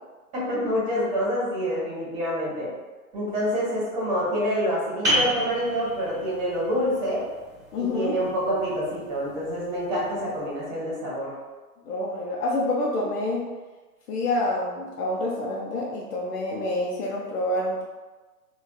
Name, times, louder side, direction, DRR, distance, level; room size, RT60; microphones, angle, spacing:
voice 1, 0.3-2.7 3.1-7.2 7.8-11.3, equal, 25° right, -6 dB, 1.1 m, -27 dB
sound 1, 5.0-10.4, equal, 5° right, 1.3 m, -32 dB
voice 2, 7.7-8.2 11.9-13.4 14.1-17.8, left 2 dB, 70° left, -4 dB, 0.7 m, -27 dB
3.4 x 2.3 x 2.2 m, 1.2 s
hypercardioid pair, 145°, 46 cm